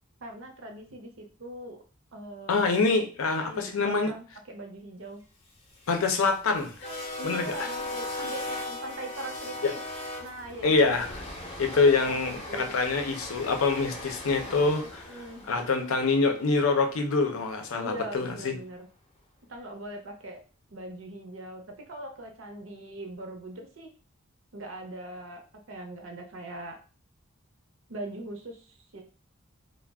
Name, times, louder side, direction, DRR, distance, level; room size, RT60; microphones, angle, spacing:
voice 1, 0.2-1.8 2.1-2.7 3.4-5.2 7.2-9.8 10.2-11.0 11.7-12.7 15.1-15.5 17.8-18.9 19.5-20.4 20.7-23.9 24.5-25.4 25.7-26.8 27.9-29.0, right 1 dB, 65° right, 3 dB, 0.6 m, -41 dB
voice 2, 2.5-4.1 5.9-6.9 7.2-7.7 10.6-11.2 11.6-15.0 15.5-18.5, left 4 dB, 80° left, 5 dB, 0.5 m, -25 dB
sound 1, 5.6-17.7, left 1 dB, 30° left, 0.6 m, -39 dB
2.3 x 2.1 x 3.4 m, 0.37 s
head